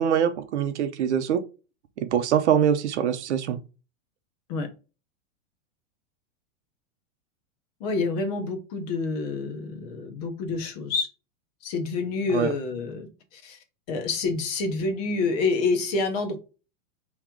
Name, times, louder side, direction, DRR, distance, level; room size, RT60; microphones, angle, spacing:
voice 1, 0.0-1.4 2.0-3.6 12.3-12.5, right 8 dB, 60° right, 0.8 m, -23 dB
voice 2, 7.8-11.1 11.6-13.6 13.9-16.4, left 4 dB, 30° left, 0.8 m, -28 dB
4.6 x 3.1 x 3.6 m
supercardioid pair, 170°, 38 cm